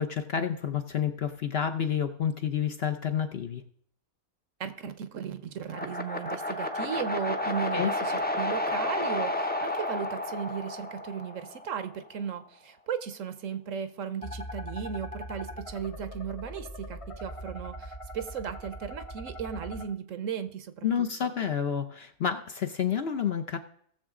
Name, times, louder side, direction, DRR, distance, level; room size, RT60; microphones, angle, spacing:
voice 1, 0.0-3.6 7.7-7.9 20.8-23.6, left 8 dB, 55° left, 8 dB, 0.8 m, -29 dB
voice 2, 4.6-20.9 21.2-21.3, right 7 dB, 65° right, 11 dB, 1.1 m, -36 dB
sound 1, 5.7-11.8, left 1 dB, 10° left, 0.5 m, -31 dB
sound 2, 14.2-19.8, equal, 25° left, 1.0 m, -41 dB
17.5 x 7.1 x 3.7 m, 0.63 s
omnidirectional pair, 1.5 m